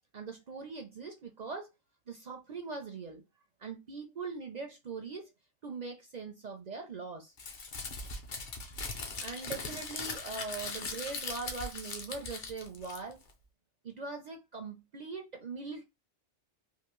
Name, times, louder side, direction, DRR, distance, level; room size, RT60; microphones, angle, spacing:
voice 1, 0.1-1.7 2.1-3.2 3.6-5.3 5.6-7.3 9.2-13.2 13.8-15.8, right 4 dB, 55° right, 0.5 m, -41 dB
Crumpling crinkling, 7.4-13.3, left 4 dB, 50° left, 0.8 m, -40 dB
3.5 x 2.5 x 3.0 m
omnidirectional pair, 1.2 m